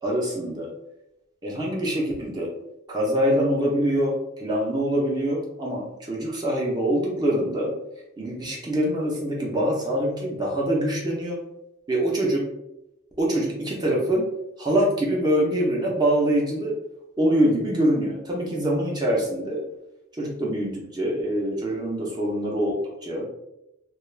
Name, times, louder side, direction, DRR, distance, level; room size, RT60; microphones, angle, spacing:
voice 1, 0.0-0.7 1.4-2.5 2.9-7.7 8.2-11.4 11.9-12.4 13.2-14.3 14.6-16.7 17.2-19.6 20.2-23.2, right 1 dB, 20° right, -3 dB, 0.6 m, -24 dB
2.3 x 2.3 x 3.2 m, 0.85 s
head